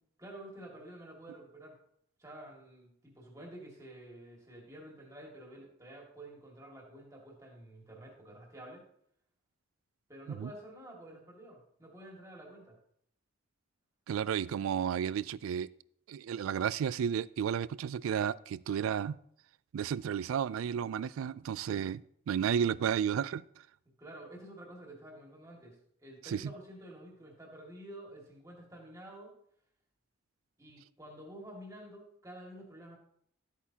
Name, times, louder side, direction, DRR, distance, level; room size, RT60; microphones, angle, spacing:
voice 1, 0.2-1.8 2.2-8.8 10.1-12.8 24.0-29.3 30.6-33.0, right 1 dB, 15° right, 2.0 m, -50 dB
voice 2, 14.1-15.7 16.1-19.2 19.7-22.0 22.3-23.4 26.2-26.5, right 8 dB, 85° right, 0.3 m, -32 dB
12.5 x 8.3 x 2.8 m
head